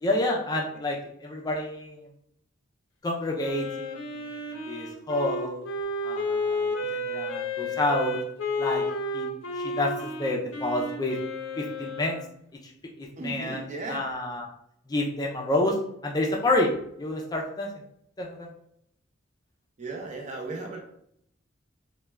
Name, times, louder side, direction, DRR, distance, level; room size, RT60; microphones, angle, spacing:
voice 1, 0.0-2.0 3.0-4.4 4.7-5.6 6.0-8.2 8.6-8.8 9.1-11.2 11.6-12.2 13.0-13.6 13.9-14.5 14.9-15.8 16.0-16.7 17.0-17.7 18.2-18.5, left 2 dB, 20° left, 0 dB, 0.4 m, -29 dB
Wind instrument woodwind instrument, 3.4-12.2, left 1 dB, 80° left, 0.5 m, -32 dB
voice 2, 13.2-14.0 19.8-20.8, right 3 dB, 40° right, 1 dB, 0.5 m, -35 dB
2.3 x 2.1 x 3.1 m, 0.72 s
head